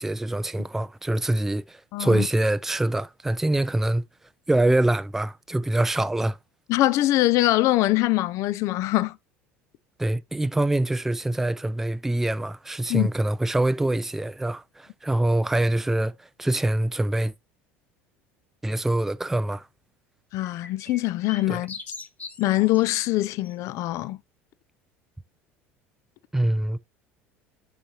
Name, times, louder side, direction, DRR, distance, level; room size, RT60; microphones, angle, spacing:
voice 1, 0.0-4.0 4.5-6.4 10.0-17.3 18.6-19.7 21.5-21.6 26.3-26.8, right 1 dB, 5° right, 0.3 m, -24 dB
voice 2, 1.9-2.3 6.7-9.2 12.9-13.1 20.3-21.8 22.4-24.2, left 17 dB, 50° left, 0.5 m, -23 dB
sound 1, 20.4-23.0 23.4-23.5, left 4 dB, 25° left, 1.0 m, -41 dB
6.9 x 5.8 x 2.8 m
figure-of-eight pair, 65°, 7 cm